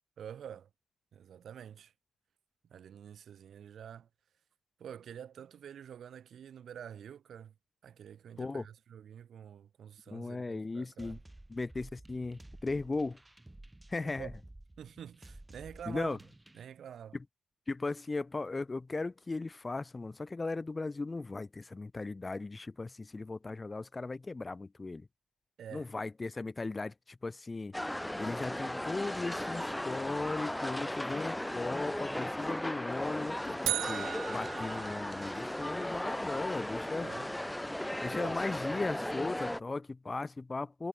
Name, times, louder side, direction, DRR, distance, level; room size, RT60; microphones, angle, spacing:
voice 1, 0.2-0.7 1.1-1.9 2.7-4.1 4.8-7.5 7.8-11.2 14.0-14.3 14.8-16.2 16.5-17.2 25.6-25.9 37.0-37.3 38.1-38.4, right 9 dB, 60° right, 3.2 m, -47 dB
voice 2, 10.1-11.2 11.5-13.2 13.9-14.3 15.9-16.2 17.1-17.2 17.7-25.1 25.7-27.8 28.2-37.1 38.0-40.9, left 3 dB, 25° left, 1.1 m, -37 dB
sound 1, 11.0-16.6, right 1 dB, 10° right, 5.0 m, -53 dB
sound 2, 27.7-39.6, left 1 dB, 5° left, 0.8 m, -36 dB
sound 3, 33.7-35.8, right 14 dB, 85° right, 0.3 m, -37 dB
cardioid pair, 90°, 0 cm